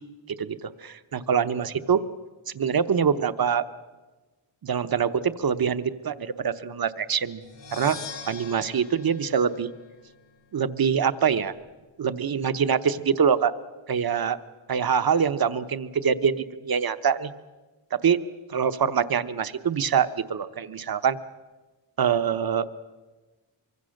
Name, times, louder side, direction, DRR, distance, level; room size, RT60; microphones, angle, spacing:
voice 1, 0.3-2.0 2.5-3.6 4.6-7.4 7.7-8.0 8.3-9.7 10.5-11.5 12.0-13.5 13.9-14.4 14.7-17.3 18.0-18.2 18.5-21.2 22.0-22.6, right 7 dB, 50° right, 12 dB, 0.9 m, -24 dB
sound 1, 7.4-10.3, left 5 dB, 70° left, 2.3 m, -42 dB
24.5 x 24.0 x 6.5 m, 1.2 s
wide cardioid pair, 175°, 45 cm